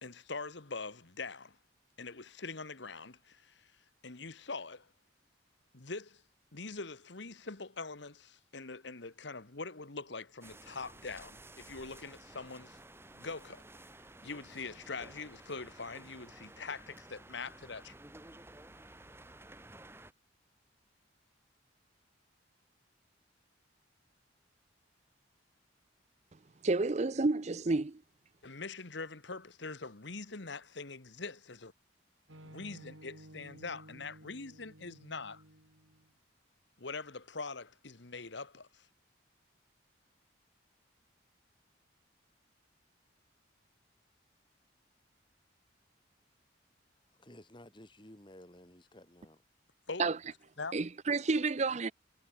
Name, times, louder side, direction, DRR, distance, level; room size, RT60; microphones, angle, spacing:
voice 1, 0.0-1.6 2.0-3.7 4.0-4.9 5.7-6.2 6.5-12.8 13.1-13.6 14.2-17.9 28.4-31.7 32.4-35.4 36.8-38.9 49.9-50.0 50.6-50.8, left 4 dB, 60° left, 1.5 m, -43 dB
sound 1, 10.4-20.1, right 2 dB, 10° right, 1.6 m, -54 dB
voice 2, 26.6-28.0 50.0-50.2 50.7-51.9, right 3 dB, 35° right, 0.5 m, -30 dB
sound 2, 32.3-36.1, right 1 dB, 85° right, 6.6 m, -54 dB
voice 3, 47.2-49.4, left 1 dB, 25° left, 2.5 m, -54 dB
head